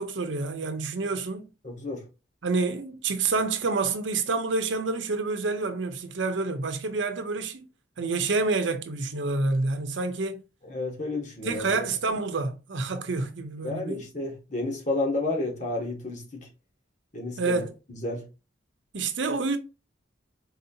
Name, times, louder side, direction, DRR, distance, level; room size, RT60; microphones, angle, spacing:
voice 1, 0.0-1.5 2.4-7.7 8.0-10.4 11.4-14.0 17.4-17.7 18.9-19.6, right 3 dB, 85° right, 0.7 m, -28 dB
voice 2, 1.6-2.0 10.6-11.9 13.6-16.5 17.1-17.6 17.9-18.3, left 2 dB, 40° left, 1.3 m, -31 dB
4.2 x 2.8 x 2.7 m
head